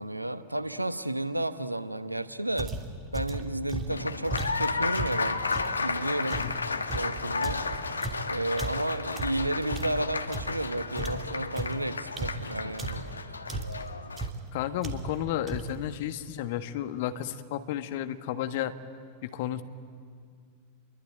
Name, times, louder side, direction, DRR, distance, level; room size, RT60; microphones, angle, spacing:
voice 1, 0.0-2.7 3.1-5.4 5.8-6.5 6.9-7.6 8.3-13.1, right 1 dB, 85° right, 13 dB, 1.0 m, -32 dB
sound 1, 2.6-5.8 6.3-10.7 10.9-13.2 13.5-13.9 14.2-14.5 14.8-15.2 15.5-15.9, right 2 dB, 20° right, 2.8 m, -36 dB
Applause, 3.9-14.3, left 4 dB, 75° left, 1.2 m, -33 dB
voice 2, 6.4-6.8 14.5-18.7 19.2-19.6, left 11 dB, 50° left, 9 dB, 1.5 m, -32 dB
28.5 x 23.0 x 9.1 m, 2.1 s
figure-of-eight pair, 90°, 0 cm